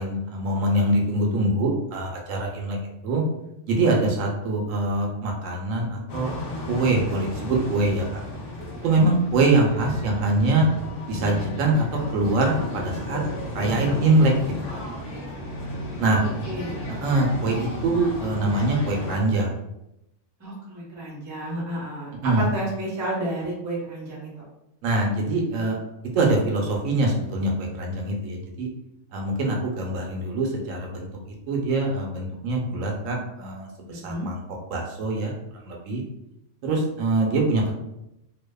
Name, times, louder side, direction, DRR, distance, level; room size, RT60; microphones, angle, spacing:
voice 1, 0.0-2.8 3.0-3.2 3.7-6.3 6.7-8.2 8.8-10.7 11.1-11.8 12.1-13.2 13.5-14.3 16.0-16.2 17.0-19.5 22.2-22.5 24.8-25.8 26.1-28.7 29.1-31.1 31.5-33.7 34.0-34.4 34.7-35.3 35.7-36.0 36.6-37.8, right 2 dB, 75° right, 0 dB, 0.9 m, -23 dB
sound 1, 6.1-19.2, left 1 dB, 60° left, 0.7 m, -34 dB
voice 2, 16.1-16.9 20.4-24.4 33.9-34.3, right 1 dB, 20° right, -5 dB, 0.5 m, -31 dB
2.6 x 2.1 x 2.2 m, 0.85 s
omnidirectional pair, 1.4 m